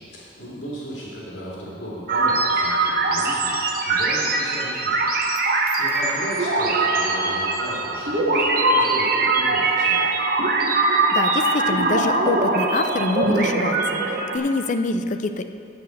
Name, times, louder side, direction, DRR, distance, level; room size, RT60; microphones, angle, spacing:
voice 1, 0.0-5.1 5.4-10.1, equal, 70° left, -6 dB, 2.7 m, -36 dB
sound 1, 2.1-14.4, right 2 dB, 50° right, 0.9 m, -21 dB
voice 2, 10.9-15.5, left 3 dB, 40° left, 9 dB, 0.4 m, -26 dB
8.2 x 7.9 x 6.5 m, 2.4 s
head